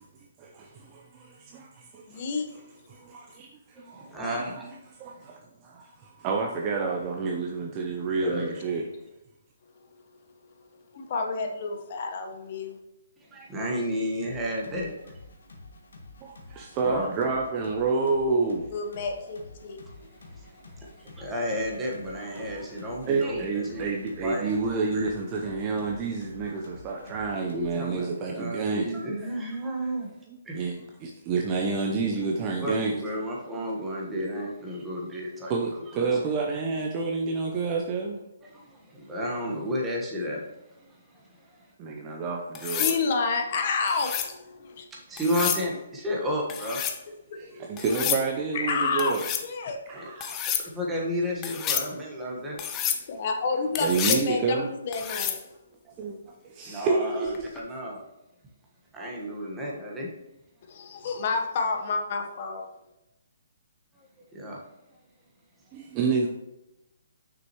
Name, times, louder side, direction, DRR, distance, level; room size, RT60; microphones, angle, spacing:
voice 1, 0.4-2.2 2.9-3.5 3.8-4.2 5.0-8.8 16.2-18.7 23.1-28.9 30.3-30.7 31.0-32.9 35.5-38.2 41.8-42.9 47.4-49.2 49.9-50.4 53.8-54.7 56.0-56.2 56.4-57.4 65.7-66.3, right 4 dB, 25° right, 0 dB, 0.7 m, -29 dB
voice 2, 2.1-2.5 8.3-8.4 10.9-12.8 18.7-19.8 42.8-44.9 47.3-47.7 47.9-48.0 48.5-49.1 49.4-49.8 53.1-55.4 60.7-62.6, left 4 dB, 45° left, 3 dB, 1.1 m, -29 dB
voice 3, 3.8-4.7 8.2-8.6 13.3-15.1 16.5-17.1 20.2-23.8 24.2-24.5 27.5-30.1 30.4-30.7 32.6-35.5 35.9-36.2 38.4-40.4 40.8-41.7 44.9-46.8 49.9-50.1 50.7-52.6 56.6-58.0 58.9-60.1 64.3-64.6, equal, 10° right, -3 dB, 1.4 m, -32 dB
sound 1, 14.2-27.9, left 2 dB, 80° left, 1.5 m, -49 dB
sound 2, 42.5-43.0 43.9-44.3 45.2-45.7 46.5-47.0 47.8-48.2 49.0-49.5 50.2-50.7 51.4-51.9 52.6-53.0 53.7-54.3 54.9-55.4 57.3-57.6, left 9 dB, 20° left, 0.5 m, -29 dB
6.1 x 6.1 x 3.1 m, 0.90 s
hypercardioid pair, 155°, 0 cm